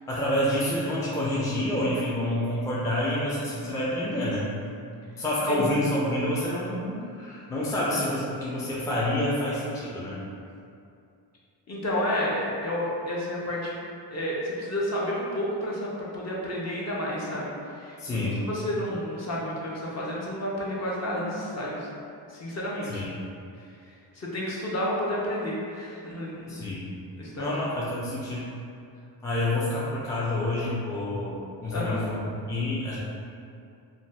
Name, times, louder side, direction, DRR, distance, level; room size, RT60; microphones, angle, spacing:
voice 1, 0.1-4.6 5.2-10.2 18.0-18.4 22.9-23.1 26.5-27.0 27.4-28.5 29.2-32.2 32.5-33.0, left 1 dB, 10° left, -7 dB, 0.4 m, -28 dB
voice 2, 5.5-5.9 11.7-13.8 14.1-21.9 22.3-23.0 24.1-26.7 27.2-27.6 31.7-32.0, equal, 35° left, -5 dB, 0.7 m, -31 dB
2.6 x 2.3 x 3.2 m, 2.5 s
cardioid pair, 90°, 46 cm